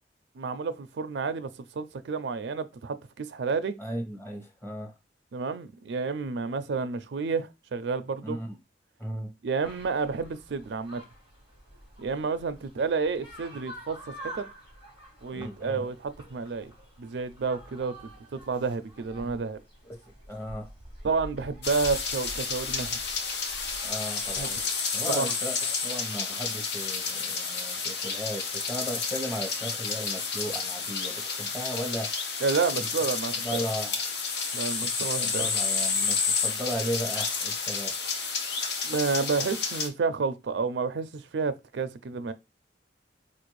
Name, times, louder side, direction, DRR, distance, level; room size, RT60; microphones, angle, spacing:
voice 1, 0.4-3.7 5.3-8.4 9.4-11.0 12.0-14.5 15.2-16.7 17.0-17.9 18.3-19.6 21.0-23.0 24.4-24.5 25.1-25.3 32.4-33.6 34.5-35.5 38.8-42.3, right 4 dB, 75° right, 0.4 m, -30 dB
voice 2, 3.8-4.9 8.2-8.6 9.0-9.3 15.3-15.9 19.1-19.4 20.3-20.7 23.8-25.6 25.8-32.1 32.8-32.9 33.4-34.0 34.8-34.9 35.2-37.9, equal, 15° left, 0.9 m, -36 dB
sound 1, 9.6-24.7, right 1 dB, 90° left, 2.0 m, -47 dB
sound 2, 21.6-39.9, left 5 dB, 65° left, 0.7 m, -30 dB
4.2 x 2.5 x 3.0 m
head